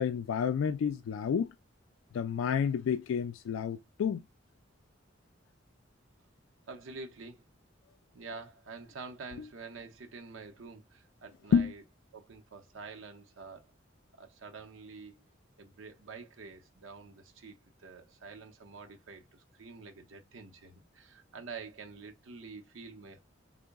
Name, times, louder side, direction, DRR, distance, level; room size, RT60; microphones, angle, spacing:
voice 1, 0.0-1.5 2.1-4.2 11.5-11.7, left 7 dB, 85° left, 0.3 m, -29 dB
voice 2, 6.7-7.4 8.1-11.8 12.1-13.7 14.2-15.2 15.6-23.2, right 4 dB, 80° right, 0.7 m, -47 dB
3.8 x 2.1 x 3.4 m
head